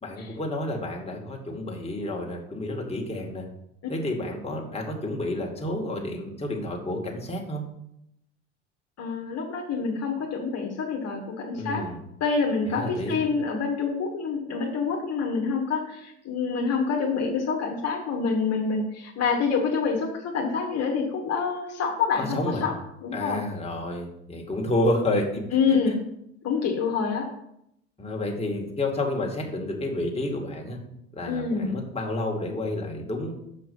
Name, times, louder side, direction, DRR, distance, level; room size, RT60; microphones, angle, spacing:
voice 1, 0.0-3.5 3.9-7.7 11.5-12.0 12.7-13.2 22.2-22.6 23.1-25.8 28.0-30.8 31.1-33.3, left 1 dB, 15° left, 0 dB, 2.2 m, -30 dB
voice 2, 9.0-11.8 12.2-22.7 23.0-23.4 25.5-26.0 26.4-27.3 31.2-31.7, left 5 dB, 45° left, 0 dB, 1.7 m, -27 dB
6.9 x 5.3 x 5.5 m, 0.78 s
hypercardioid pair, 75°, 35 cm